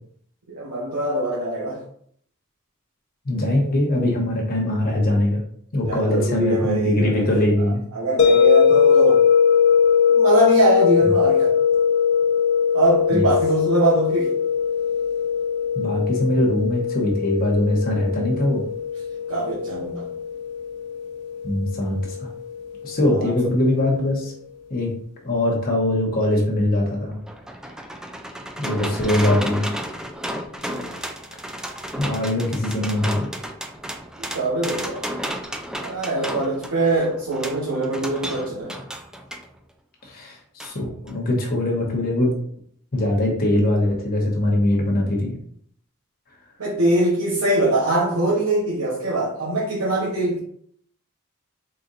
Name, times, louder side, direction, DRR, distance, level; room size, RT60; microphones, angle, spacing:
voice 1, 0.5-1.8 5.9-7.2 7.9-9.2 10.1-11.5 12.7-14.4 19.3-20.1 23.1-23.3 28.7-29.0 30.6-31.0 34.2-35.0 35.8-38.7 46.6-50.4, right 2 dB, 85° right, -6 dB, 1.0 m, -23 dB
voice 2, 3.2-5.4 5.7-7.8 13.1-13.2 15.7-18.6 21.4-22.3 22.8-24.3 24.7-24.9 25.2-27.2 28.6-29.6 32.0-33.3 40.0-42.3 42.9-45.4, left 1 dB, 45° left, -1 dB, 0.9 m, -22 dB
sound 1, 8.2-23.1, left 7 dB, 80° left, 0.8 m, -20 dB
sound 2, 26.9-39.5 40.6-40.7 41.1-41.2, equal, 5° right, 0.3 m, -32 dB
4.1 x 3.9 x 2.5 m, 0.62 s
head